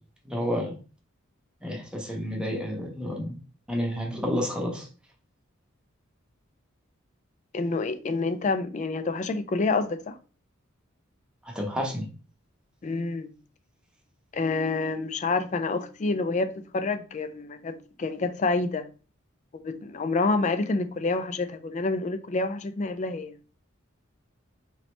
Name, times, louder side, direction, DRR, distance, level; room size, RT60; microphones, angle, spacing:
voice 1, 0.2-0.7 1.6-3.4 3.7-4.9 11.4-12.1, equal, 5° right, 0.7 m, -30 dB
voice 2, 7.5-10.1 12.8-13.3 14.3-18.9 19.6-23.4, left 3 dB, 35° left, 0.3 m, -28 dB
4.0 x 3.2 x 3.1 m
head